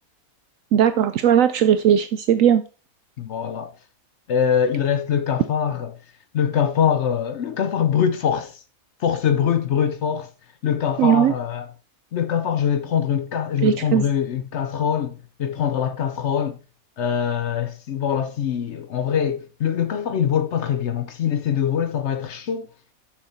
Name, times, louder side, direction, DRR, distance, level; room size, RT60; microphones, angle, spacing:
voice 1, 0.7-2.6 11.0-11.3 13.6-14.0, right 9 dB, 70° right, 0.9 m, -18 dB
voice 2, 3.2-3.7 4.3-5.9 6.3-8.6 9.0-10.3 10.6-11.7 12.1-16.6 17.0-22.7, left 8 dB, 60° left, 0.9 m, -23 dB
6.6 x 6.5 x 4.3 m
omnidirectional pair, 1.5 m